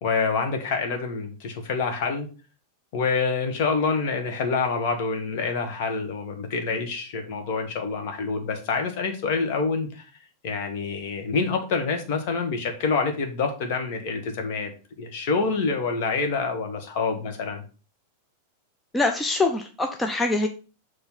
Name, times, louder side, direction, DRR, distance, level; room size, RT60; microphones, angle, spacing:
voice 1, 0.0-2.3 2.9-10.0 10.4-14.7 15.0-17.6, left 4 dB, 45° left, 5 dB, 1.5 m, -27 dB
voice 2, 18.9-20.5, left 2 dB, 10° left, 4 dB, 0.6 m, -24 dB
7.1 x 3.2 x 5.5 m, 0.35 s
figure-of-eight pair, 90°, 0 cm